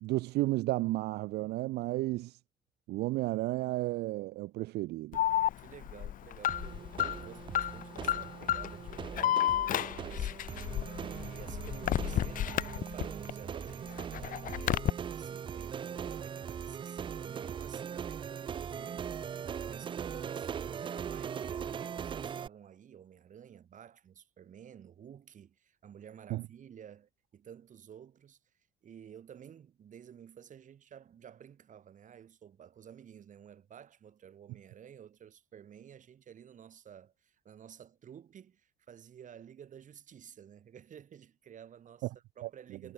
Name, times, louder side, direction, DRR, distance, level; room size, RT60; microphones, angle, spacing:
voice 1, 0.0-2.4 2.9-5.2 26.3-26.4 42.4-42.5, right 19 dB, 80° right, 0.6 m, -32 dB
Alarm, 5.1-13.3 13.7-14.9, left 11 dB, 55° left, 0.8 m, -32 dB
voice 2, 5.6-10.5 10.9-42.9, right 9 dB, 50° right, 7.3 m, -52 dB
sound 1, 6.5-22.5, right 7 dB, 30° right, 0.4 m, -40 dB
cardioid pair, 110°, 17 cm